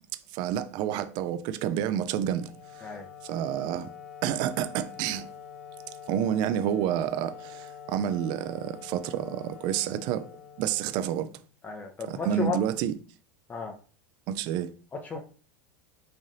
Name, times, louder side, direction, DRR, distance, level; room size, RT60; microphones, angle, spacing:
voice 1, 0.3-2.5 2.8-2.9 3.2-3.9 4.2-5.3 6.1-10.3 10.6-11.3 12.0-12.9 14.3-14.7, right 10 dB, 55° right, 0.5 m, -29 dB
Wind instrument woodwind instrument, 2.2-11.5, left 7 dB, 75° left, 1.0 m, -46 dB
voice 2, 11.6-12.6 13.5-13.7 15.0-15.2, left 5 dB, 20° left, 0.7 m, -33 dB
3.2 x 2.6 x 3.9 m
hypercardioid pair, 95°, 9 cm